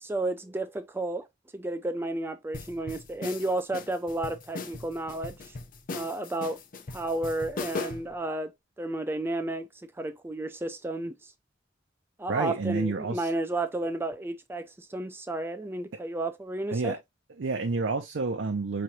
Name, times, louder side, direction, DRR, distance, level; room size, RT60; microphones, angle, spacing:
voice 1, 0.0-1.3 1.5-5.5 5.9-6.6 6.9-8.5 8.8-9.7 10.0-11.1 12.2-17.0, right 2 dB, 10° right, 0.4 m, -32 dB
sound 1, 2.5-8.1, left 3 dB, 45° left, 0.6 m, -38 dB
voice 2, 12.3-13.3 16.7-17.0 17.4-18.8, right 3 dB, 70° right, 0.5 m, -29 dB
4.7 x 3.1 x 2.7 m
head